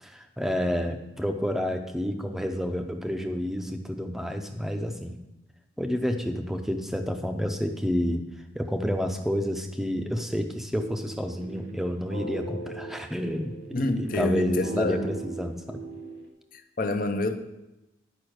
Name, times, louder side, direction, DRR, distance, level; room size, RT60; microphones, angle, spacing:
voice 1, 0.0-5.2 5.8-8.2 8.5-13.5 14.0-15.8, equal, ahead, 5 dB, 0.7 m, -29 dB
sound 1, 10.7-16.3, right 2 dB, 80° right, 2.1 m, -39 dB
voice 2, 13.7-15.1 16.5-17.4, left 2 dB, 45° left, 8 dB, 0.7 m, -27 dB
10.5 x 5.5 x 6.4 m, 0.97 s
head